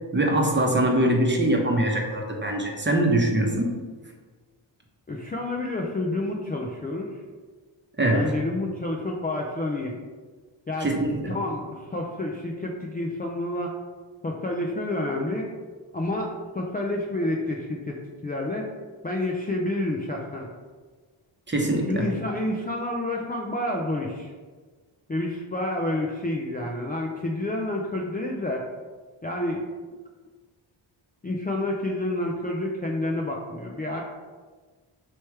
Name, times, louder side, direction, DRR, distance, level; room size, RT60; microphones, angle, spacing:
voice 1, 0.1-3.8 8.0-8.3 10.8-11.4 21.5-22.1, right 1 dB, 20° right, 0 dB, 0.9 m, -23 dB
voice 2, 5.1-7.2 8.1-10.0 10.7-10.9 11.3-13.7 14.2-15.5 15.9-18.7 19.0-20.5 21.9-24.3 25.1-28.6 29.2-29.6 31.2-34.0, left 1 dB, 20° left, -2 dB, 0.4 m, -29 dB
3.1 x 3.1 x 4.6 m, 1.4 s
cardioid pair, 50°, 50 cm